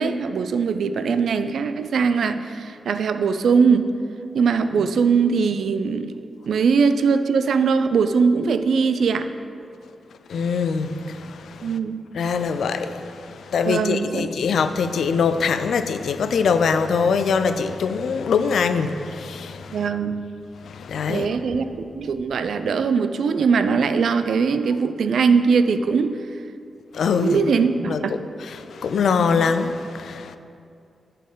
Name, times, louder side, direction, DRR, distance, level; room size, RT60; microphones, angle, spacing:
voice 1, 0.0-3.9 4.3-9.3 11.6-12.0 13.7-14.3 19.7-20.2 21.1-21.7 22.0-26.2 27.2-28.2 29.2-29.3, right 5 dB, 75° right, 0.3 m, -21 dB
voice 2, 10.3-11.7 12.2-19.8 20.6-21.3 26.9-27.4 27.9-28.0 28.5-30.4, left 5 dB, 80° left, 0.3 m, -23 dB
11.0 x 4.2 x 3.8 m
wide cardioid pair, 140°, 0 cm